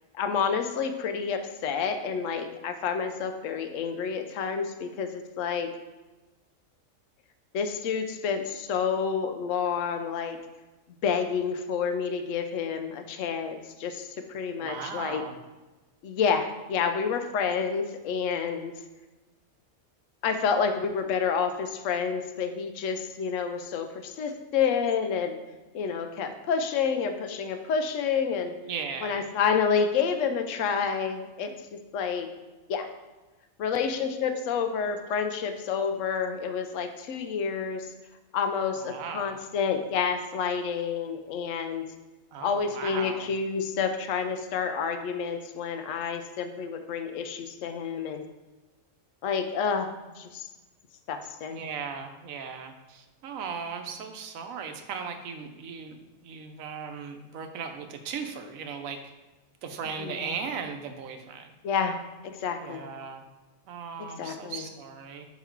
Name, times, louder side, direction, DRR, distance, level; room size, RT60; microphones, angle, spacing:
voice 1, 0.1-5.7 7.5-10.4 11.0-15.2 16.0-18.7 20.2-25.4 25.7-28.5 29.0-31.5 31.9-32.3 32.7-32.9 33.6-37.9 38.3-41.9 42.4-48.3 49.2-49.9 50.2-50.5 51.1-51.6 60.0-60.3 61.6-62.9 64.2-64.7, left 6 dB, 70° left, 7 dB, 1.0 m, -29 dB
voice 2, 14.6-15.4 28.6-29.2 38.8-39.4 42.3-43.3 51.5-59.0 59.6-61.5 62.6-63.2 63.7-65.3, right 6 dB, 90° right, 6 dB, 1.1 m, -37 dB
5.9 x 4.2 x 4.5 m, 1.1 s
omnidirectional pair, 1.4 m